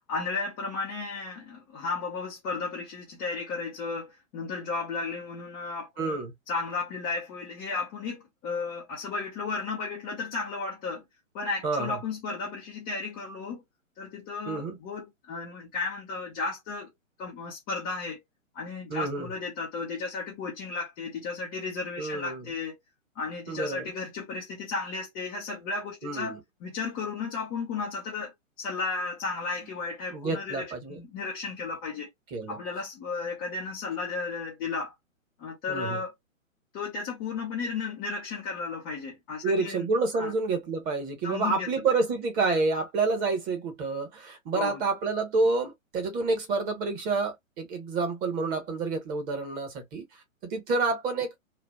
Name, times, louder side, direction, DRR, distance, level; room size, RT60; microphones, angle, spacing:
voice 1, 0.1-6.2 6.5-11.0 11.3-13.6 14.0-16.9 17.2-18.2 18.5-22.8 23.2-32.1 32.5-34.9 35.4-36.1 36.7-39.8 40.2-40.3 41.2-41.7 44.5-44.8, left 4 dB, 10° left, 0.4 m, -34 dB
voice 2, 6.0-6.3 11.6-12.0 14.5-14.8 18.9-19.3 22.0-22.4 23.5-23.9 26.0-26.4 30.1-31.0 32.3-32.6 35.7-36.0 39.4-50.0 50.5-51.3, right 3 dB, 20° right, 1.0 m, -28 dB
3.0 x 2.4 x 2.3 m
hypercardioid pair, 125°, 41 cm